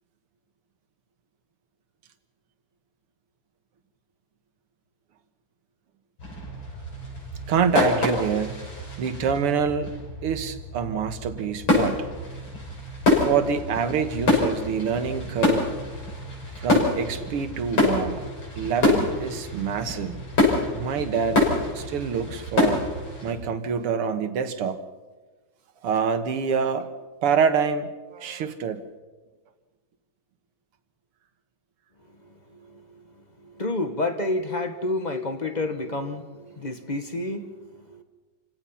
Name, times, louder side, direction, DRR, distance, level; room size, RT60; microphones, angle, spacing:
sound 1, 6.2-23.3, left 2 dB, 65° left, 7.1 m, -26 dB
voice 1, 7.5-8.6 9.0-9.9 10.2-12.0 13.2-15.7 16.6-18.3 18.6-20.2 20.7-21.5 21.7-22.8 23.2-24.8 25.8-26.9 27.2-28.8, right 6 dB, 90° right, 9 dB, 2.3 m, -26 dB
voice 2, 33.4-38.0, left 2 dB, 25° left, 7 dB, 1.2 m, -29 dB
28.5 x 17.0 x 5.8 m, 1.2 s
omnidirectional pair, 2.4 m